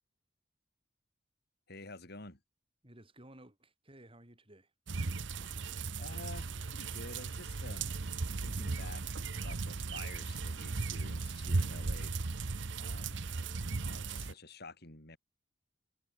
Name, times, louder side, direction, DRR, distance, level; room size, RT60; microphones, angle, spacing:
voice 1, 1.7-2.4 6.0-8.0 8.4-12.1 12.7-13.3 13.8-15.2, left 2 dB, 55° left, 5.3 m, -50 dB
voice 2, 2.8-4.7 13.3-13.7 14.1-14.4, right 1 dB, 30° right, 5.7 m, -57 dB
sound 1, 4.9-14.3, right 3 dB, 70° right, 0.9 m, -37 dB
head